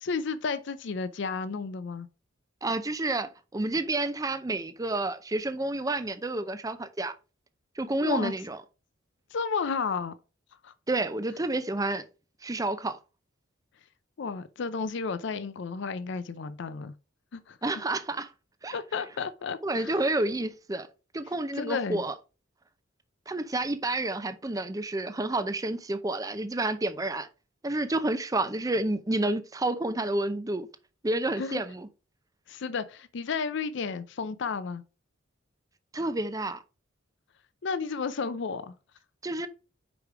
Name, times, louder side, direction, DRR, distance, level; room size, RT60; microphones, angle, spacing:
voice 1, 0.0-2.1 8.0-8.3 9.3-10.1 10.6-10.7 14.2-16.9 17.3-17.6 18.7-20.2 21.5-22.0 31.4-31.6 32.5-34.8 37.6-38.7, left 5 dB, 60° left, 0.5 m, -32 dB
voice 2, 2.6-7.1 7.8-8.6 10.9-12.0 12.4-13.0 17.6-18.3 18.6-18.7 19.6-20.9 21.1-22.1 23.3-27.3 27.6-30.7 31.0-31.9 35.9-36.6 39.2-39.5, right 2 dB, 15° right, 0.5 m, -29 dB
5.1 x 4.9 x 4.6 m
head